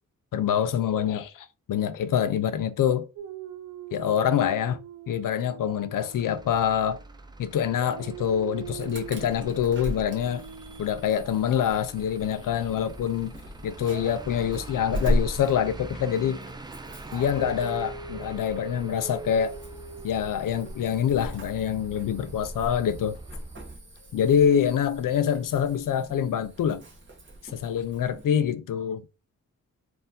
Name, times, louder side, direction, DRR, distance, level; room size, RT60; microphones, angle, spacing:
voice 1, 0.3-3.1 3.9-4.8 5.1-7.0 7.4-10.4 10.8-13.4 13.6-16.4 17.1-19.6 20.0-23.2 24.1-26.8 27.5-29.0, left 9 dB, 85° left, 0.5 m, -25 dB
Dog, 3.2-7.3 7.7-12.7 13.8-20.8, right 7 dB, 85° right, 0.6 m, -43 dB
Truck / Idling, 6.1-23.8, right 2 dB, 15° right, 0.3 m, -45 dB
Insect / Alarm, 8.8-28.2, equal, 35° right, 1.3 m, -38 dB
4.3 x 2.6 x 3.6 m
wide cardioid pair, 135°, 32 cm